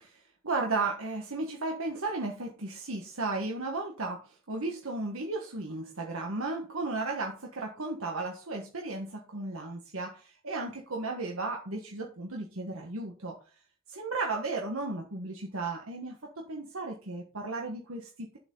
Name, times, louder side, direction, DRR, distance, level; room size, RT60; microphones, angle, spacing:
voice 1, 0.4-13.4 13.9-18.4, right 3 dB, 80° right, 1 dB, 1.5 m, -34 dB
9.0 x 7.6 x 4.0 m, 0.35 s
head